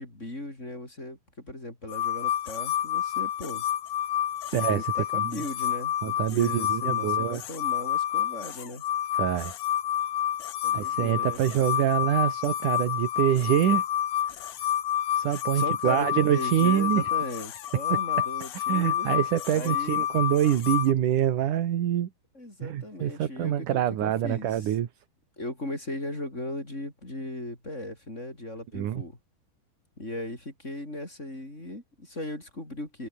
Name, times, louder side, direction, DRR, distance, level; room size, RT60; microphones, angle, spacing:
voice 1, 0.0-3.7 4.5-8.8 10.6-11.7 15.5-19.1 19.5-20.0 22.3-24.7 25.4-29.2 30.0-33.1, left 1 dB, 15° left, 6.1 m, -37 dB
sound 1, 1.9-20.9, left 11 dB, 75° left, 3.7 m, -29 dB
voice 2, 4.5-4.9 5.1-5.2 6.0-7.4 9.1-9.5 10.7-13.8 15.2-17.0 18.5-22.1 22.6-24.9 28.7-29.0, right 11 dB, 60° right, 2.9 m, -25 dB
omnidirectional pair, 4.4 m